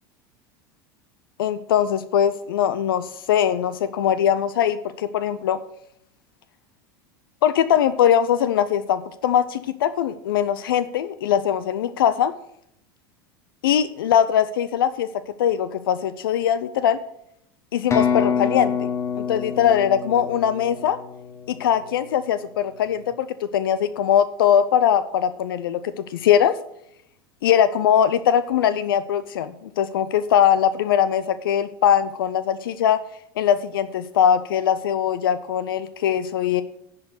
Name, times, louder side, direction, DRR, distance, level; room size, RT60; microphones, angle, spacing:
voice 1, 1.4-5.6 7.4-12.3 13.6-15.1 15.4-17.0 17.7-18.9 19.2-21.0 21.5-23.3 23.5-26.6 27.4-33.0 33.4-36.6, left 9 dB, 85° left, 14 dB, 0.4 m, -21 dB
sound 1, 17.9-21.7, left 7 dB, 25° left, 1.1 m, -26 dB
10.5 x 4.5 x 6.6 m, 0.75 s
hypercardioid pair, 95°, 12 cm